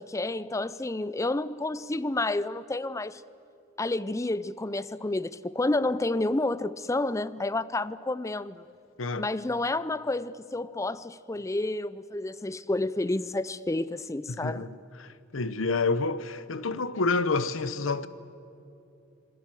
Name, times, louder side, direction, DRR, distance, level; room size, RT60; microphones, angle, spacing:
voice 1, 0.0-3.2 3.8-8.6 9.2-14.7, left 2 dB, 15° left, 0.5 m, -30 dB
voice 2, 14.3-14.7 15.0-18.1, left 3 dB, 90° left, 0.9 m, -28 dB
26.5 x 22.0 x 7.5 m
head